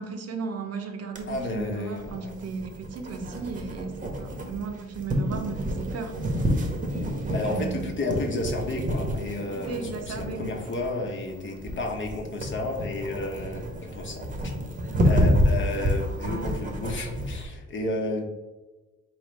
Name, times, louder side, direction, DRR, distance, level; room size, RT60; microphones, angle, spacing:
voice 1, 0.0-6.1 6.9-7.8 9.7-10.5 15.7-15.8, right 5 dB, 55° right, 5 dB, 0.7 m, -35 dB
sound 1, 1.2-17.5, equal, 25° right, 0.9 m, -29 dB
voice 2, 1.3-2.3 7.3-14.5 15.0-18.2, left 2 dB, 40° left, 2 dB, 1.0 m, -32 dB
4.5 x 3.2 x 3.2 m, 1.2 s
cardioid pair, 90°, 30 cm